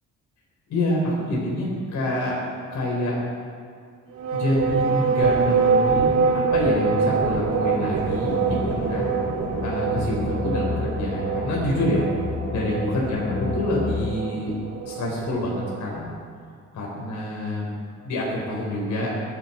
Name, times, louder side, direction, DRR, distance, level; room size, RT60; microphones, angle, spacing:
voice 1, 0.7-3.2 4.3-9.1 9.6-12.1 12.5-14.5 14.8-16.1 16.7-19.1, left 1 dB, 70° left, -4 dB, 4.7 m, -27 dB
sound 1, 4.1-16.0, right 5 dB, 75° right, 3.4 m, -25 dB
sound 2, 8.3-14.2, left 6 dB, 30° left, 0.6 m, -31 dB
23.0 x 10.5 x 4.6 m, 2.3 s
cardioid pair, 90°, 30 cm